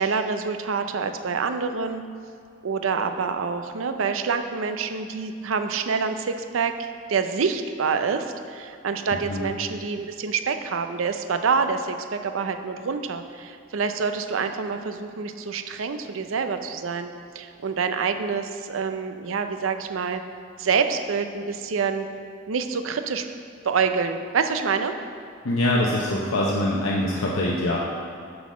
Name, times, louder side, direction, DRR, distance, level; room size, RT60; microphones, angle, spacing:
voice 1, 0.0-2.0 2.6-20.2 20.6-22.1 22.5-23.2 23.6-24.9, right 5 dB, 75° right, 7 dB, 0.5 m, -26 dB
voice 2, 25.4-27.8, left 1 dB, 80° left, -4 dB, 0.8 m, -23 dB
9.4 x 4.0 x 6.2 m, 2.4 s
head